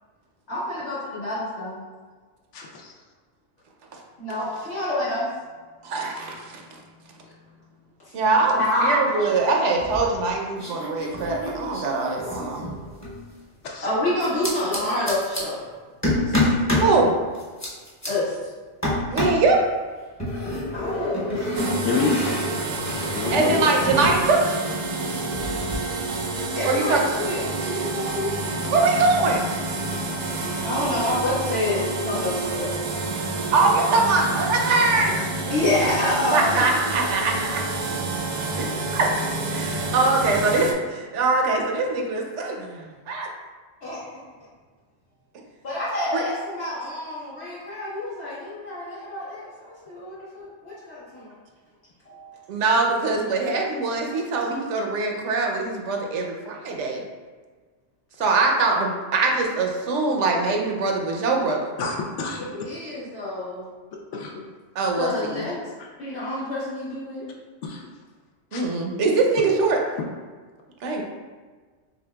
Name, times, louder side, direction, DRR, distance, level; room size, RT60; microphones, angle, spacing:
voice 1, 0.5-1.8 4.2-5.3 8.6-9.0 13.8-15.6 16.3-16.5 18.0-18.5 20.7-21.3 26.5-28.3 30.6-32.7 35.5-36.6 43.8-44.2 45.6-51.3 52.1-52.4 54.1-54.2 62.4-63.6 65.0-65.6 66.0-67.2, left 1 dB, 60° left, -11 dB, 1.8 m, -28 dB
voice 2, 2.5-2.9 13.6-13.9 21.8-22.2 23.1-23.6 39.7-39.9 61.8-62.4 64.1-64.3 65.8-65.9 67.6-67.9 68.5-68.6, left 4 dB, 75° left, 0 dB, 0.9 m, -29 dB
voice 3, 5.8-6.6 8.1-12.6 16.8-17.1 19.1-19.7 23.3-24.4 26.6-27.0 28.7-29.5 33.5-35.2 36.3-37.6 38.6-39.1 39.5-43.3 46.1-46.2 52.5-57.0 58.2-61.7 64.8-65.4 68.5-69.8 70.8-71.0, right 3 dB, 75° right, 1 dB, 0.9 m, -22 dB
sound 1, 9.8-10.3 10.6-13.2 14.2-15.4 16.0-16.9 17.3-18.1 18.8-19.5 20.2-24.2 24.5-25.7, left 1 dB, 15° left, 0.8 m, -27 dB
sound 2, 21.5-40.7, right 2 dB, 60° right, 0.4 m, -29 dB
6.7 x 2.3 x 2.2 m, 1.4 s
omnidirectional pair, 1.2 m